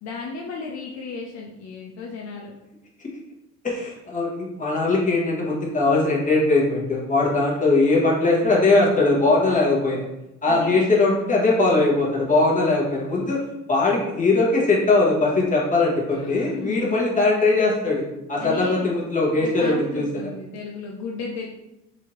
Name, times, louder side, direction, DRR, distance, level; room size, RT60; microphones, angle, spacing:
voice 1, 0.0-2.6 9.5-9.7 10.5-11.1 16.1-17.0 18.4-18.9 19.3-21.5, left 4 dB, 65° left, -1 dB, 0.6 m, -34 dB
voice 2, 3.6-10.0 10.4-13.4 13.7-18.0 18.3-20.0, left 3 dB, 25° left, -4 dB, 1.3 m, -20 dB
4.2 x 2.7 x 3.1 m, 0.92 s
cardioid pair, 105°, 30 cm